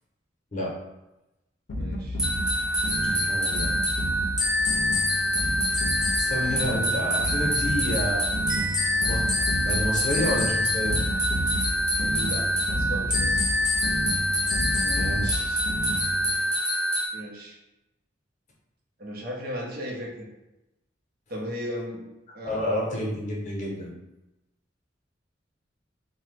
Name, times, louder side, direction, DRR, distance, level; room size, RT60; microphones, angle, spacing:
sound 1, 1.7-16.4, equal, 85° left, 0.5 m, -31 dB
voice 1, 1.7-2.2 12.0-13.5 15.2-15.6 17.1-17.6 19.0-20.3 21.3-22.9, equal, 55° right, -1 dB, 0.6 m, -37 dB
sound 2, 2.2-17.1, equal, 5° right, 0.5 m, -26 dB
voice 2, 3.0-3.7 6.2-8.3 9.0-9.2 9.6-11.0 14.8-15.5 22.4-23.9, left 1 dB, 45° left, -3 dB, 0.7 m, -29 dB
2.9 x 2.1 x 3.2 m, 0.95 s
head